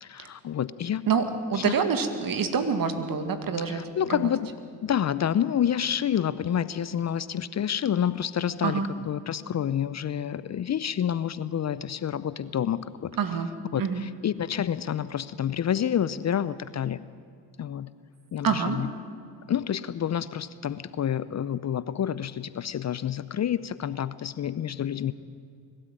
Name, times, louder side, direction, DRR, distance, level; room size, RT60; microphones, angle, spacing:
voice 1, 0.0-1.0 1.6-1.7 3.7-4.5 4.8-8.8 9.1-13.1 13.7-17.0 17.6-17.9 18.3-18.9 19.5-25.1, left 9 dB, 40° left, 16 dB, 0.7 m, -28 dB
voice 2, 1.1-3.8 4.1-4.3 8.6-8.9 13.1-13.5 13.8-14.0 18.4-18.8, right 6 dB, 50° right, 8 dB, 2.2 m, -26 dB
22.5 x 12.5 x 9.1 m, 2.3 s
hypercardioid pair, 60°, 43 cm